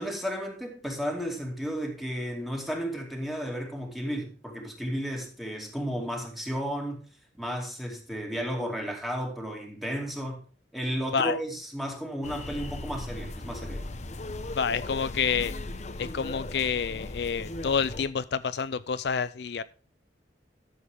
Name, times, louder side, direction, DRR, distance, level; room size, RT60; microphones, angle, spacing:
voice 1, 0.0-7.0 7.4-10.4 10.7-13.9, equal, ahead, 2.4 m, -33 dB
sound 1, 12.2-18.1, left 2 dB, 40° left, 0.9 m, -38 dB
voice 2, 14.6-15.5 16.0-19.6, left 6 dB, 65° left, 0.4 m, -28 dB
12.5 x 7.3 x 3.6 m
head